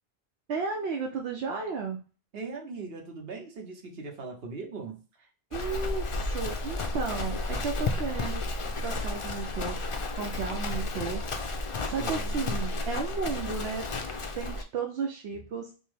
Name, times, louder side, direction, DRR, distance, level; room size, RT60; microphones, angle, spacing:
voice 1, 0.5-2.0 5.5-8.4 8.8-9.8 10.1-11.2 11.6-13.9 14.3-15.7, right 5 dB, 90° right, 2 dB, 0.9 m, -34 dB
voice 2, 2.3-5.0 12.0-12.4, right 4 dB, 70° right, 1 dB, 1.2 m, -39 dB
Livestock farm animals working animals, 5.5-14.6, left 2 dB, 45° left, 0.4 m, -32 dB
5.3 x 2.0 x 3.3 m, 0.35 s
omnidirectional pair, 1.0 m